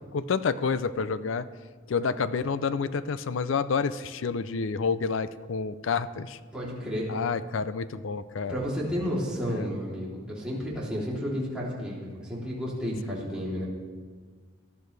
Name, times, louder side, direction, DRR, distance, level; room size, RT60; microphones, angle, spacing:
voice 1, 0.1-1.5 1.9-6.4 7.1-8.6 9.5-9.7, left 5 dB, 70° left, 14 dB, 0.5 m, -29 dB
voice 2, 6.5-7.1 8.4-13.7, equal, 5° right, -7 dB, 3.2 m, -32 dB
18.5 x 12.5 x 3.3 m, 1.6 s
head